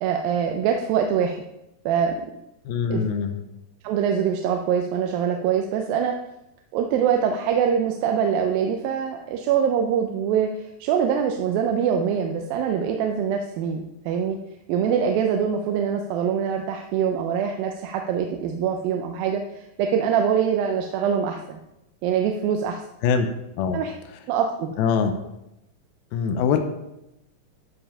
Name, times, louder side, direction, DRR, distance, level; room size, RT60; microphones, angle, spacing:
voice 1, 0.0-1.4 1.9-2.1 2.9-3.0 3.8-6.1 6.7-14.4 14.7-21.6 22.0-22.8 23.7-23.9 24.3-24.7, right 7 dB, 85° right, 3 dB, 2.5 m, -24 dB
voice 2, 2.7-3.4 23.0-23.3 23.6-23.8 24.8-25.1 26.1-26.6, left 6 dB, 90° left, 6 dB, 2.6 m, -22 dB
12.5 x 4.9 x 5.4 m, 0.89 s
omnidirectional pair, 4.1 m